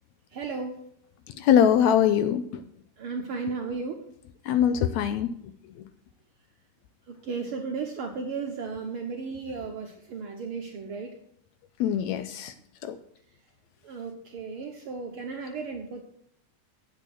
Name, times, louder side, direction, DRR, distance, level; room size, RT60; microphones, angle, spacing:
voice 1, 0.3-0.9 3.0-4.1 7.1-11.2 13.8-16.0, right 4 dB, 70° right, 2 dB, 1.3 m, -35 dB
voice 2, 1.4-2.6 4.5-5.5 11.8-12.5 12.8-13.0, left 9 dB, 80° left, 11 dB, 1.7 m, -23 dB
9.2 x 7.7 x 6.2 m, 0.70 s
omnidirectional pair, 3.5 m